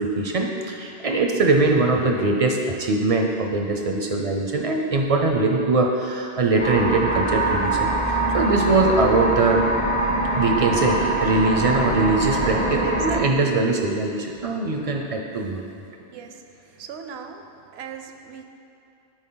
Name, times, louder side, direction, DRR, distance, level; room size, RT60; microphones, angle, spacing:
voice 1, 0.0-9.6 10.4-15.8, right 3 dB, 45° right, 2 dB, 0.5 m, -22 dB
sound 1, 6.6-13.2, right 1 dB, 10° left, 0.5 m, -24 dB
sound 2, 6.7-12.4, left 4 dB, 80° left, 2.1 m, -40 dB
sound 3, 7.2-13.8, right 3 dB, 60° left, 1.5 m, -32 dB
voice 2, 12.6-13.0 16.0-16.4 16.8-17.4 17.7-18.4, right 7 dB, 75° right, 6 dB, 0.8 m, -38 dB
9.7 x 4.1 x 3.8 m, 2.8 s
omnidirectional pair, 1.1 m